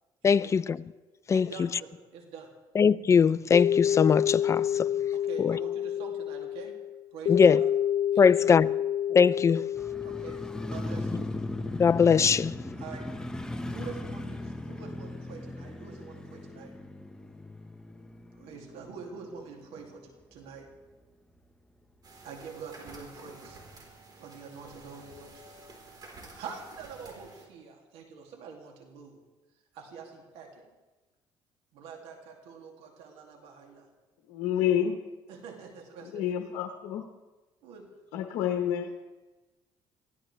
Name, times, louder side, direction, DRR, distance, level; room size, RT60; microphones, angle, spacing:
voice 1, 0.2-0.8 1.3-1.5 2.8-4.9 5.4-5.6 7.3-7.6 8.2-8.7 9.1-9.6 11.7-12.5, left 6 dB, 30° left, 16 dB, 0.5 m, -21 dB
voice 2, 1.3-2.5 5.1-6.7 7.1-7.7 8.1-8.4 9.5-9.7 10.0-11.3 12.8-13.1 13.6-16.7 18.3-20.8 22.2-23.6 24.2-25.5 26.3-29.2 29.7-30.7 31.7-33.9 35.3-36.2 37.6-38.0, right 5 dB, 90° right, 2 dB, 2.6 m, -45 dB
sound 1, 3.5-10.8, left 10 dB, 65° left, 0.9 m, -28 dB
Motorcycle, 9.7-19.9 20.2-20.3, left 2 dB, 5° left, 1.1 m, -38 dB
sound 2, 22.0-27.5, right 2 dB, 45° right, 4.1 m, -50 dB
voice 3, 34.3-35.0 36.1-37.0 38.1-38.9, left 10 dB, 85° left, 4 dB, 1.1 m, -28 dB
24.0 x 16.0 x 3.3 m, 1.2 s
cardioid pair, 95°, 10 cm